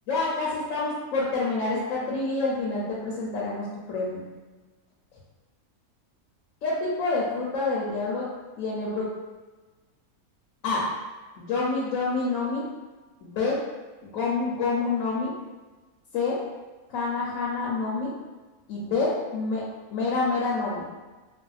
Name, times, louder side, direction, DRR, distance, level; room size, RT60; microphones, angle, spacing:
voice 1, 0.1-4.2 6.6-8.3 8.6-9.1 10.6-10.9 11.4-12.6 13.2-13.6 14.0-15.3 16.1-16.4 16.9-18.1 18.7-19.6 19.9-20.8, left 3 dB, 70° left, -6 dB, 0.9 m, -27 dB
3.4 x 2.1 x 2.4 m, 1.2 s
omnidirectional pair, 1.5 m